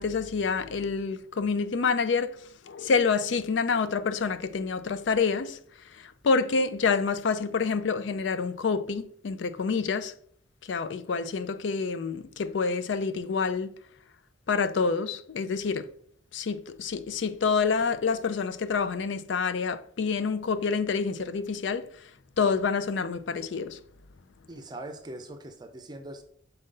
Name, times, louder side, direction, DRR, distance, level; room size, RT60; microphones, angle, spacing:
voice 1, 0.0-2.4 2.7-5.6 5.9-10.1 10.7-13.7 14.5-15.9 16.3-21.9 22.4-23.8, left 5 dB, 70° left, 0.4 m, -27 dB
voice 2, 24.5-26.2, right 1 dB, 25° right, 0.6 m, -41 dB
6.6 x 4.2 x 3.7 m
head